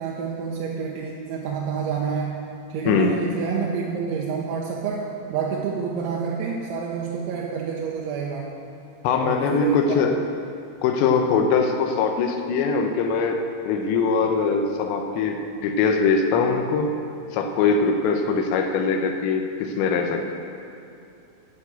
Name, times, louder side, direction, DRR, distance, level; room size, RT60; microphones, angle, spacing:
voice 1, 0.0-2.4 2.7-8.5 9.2-10.0, right 6 dB, 80° right, -2 dB, 3.2 m, -28 dB
voice 2, 2.9-3.2 9.0-10.2 10.8-16.9 17.3-20.3, left 5 dB, 80° left, 4 dB, 2.9 m, -22 dB
11.5 x 6.0 x 8.0 m, 2.6 s
omnidirectional pair, 5.4 m